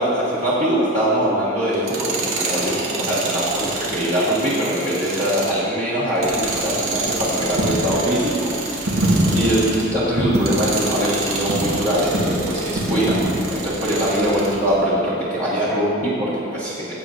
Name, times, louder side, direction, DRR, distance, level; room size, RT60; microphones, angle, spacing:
voice 1, 0.0-8.5 9.3-13.2 13.5-16.9, equal, 35° right, -9 dB, 1.6 m, -22 dB
Tools, 1.7-9.9 10.4-14.6, right 3 dB, 85° right, 1.6 m, -28 dB
Coin (dropping), 6.2-14.8, right 1 dB, 65° right, 1.4 m, -25 dB
15.5 x 8.3 x 2.6 m, 2.6 s
head